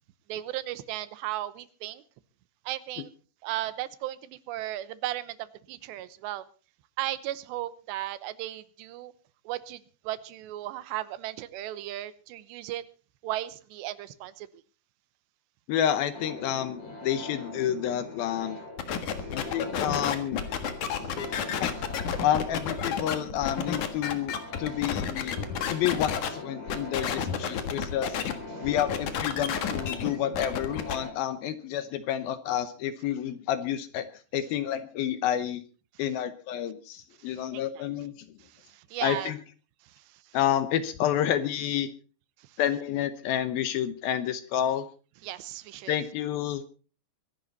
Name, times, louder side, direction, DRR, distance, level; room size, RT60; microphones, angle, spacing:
voice 1, 0.3-2.0 2.7-3.1 3.4-6.4 7.0-9.1 9.5-9.8 10.0-12.8 13.2-14.5 27.1-27.3 37.3-37.9 38.7-39.3 45.2-46.0, right 14 dB, 85° right, 16 dB, 3.1 m, -35 dB
voice 2, 15.7-18.6 19.3-20.4 21.6-21.8 22.2-25.4 25.7-28.2 28.6-34.1 34.3-35.6 36.0-38.1 39.0-39.4 40.3-41.9 42.6-44.9 45.9-46.6, left 10 dB, 75° left, 13 dB, 2.4 m, -29 dB
sound 1, 16.1-31.1, left 2 dB, 35° left, 6.5 m, -42 dB
sound 2, 18.8-26.3 26.7-28.3 28.6-31.0, left 7 dB, 55° left, 2.6 m, -31 dB
23.5 x 11.0 x 4.1 m, 0.36 s
omnidirectional pair, 4.9 m